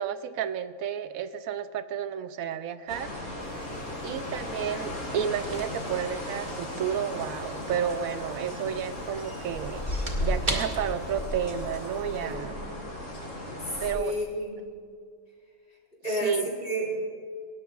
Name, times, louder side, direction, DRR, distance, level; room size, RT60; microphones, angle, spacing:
voice 1, 0.0-3.4 4.0-9.8 10.2-12.5 13.8-14.2 16.1-16.5, right 8 dB, 80° right, 11 dB, 1.0 m, -31 dB
sound 1, 2.9-13.9, left 1 dB, 90° left, 4.2 m, -35 dB
sound 2, 3.4-12.3, right 2 dB, 35° right, 2.1 m, -41 dB
voice 2, 12.2-12.6 13.9-14.6 16.0-16.4 16.6-16.9, equal, 40° left, -3 dB, 4.1 m, -31 dB
20.5 x 17.5 x 2.4 m, 2.1 s
omnidirectional pair, 1.5 m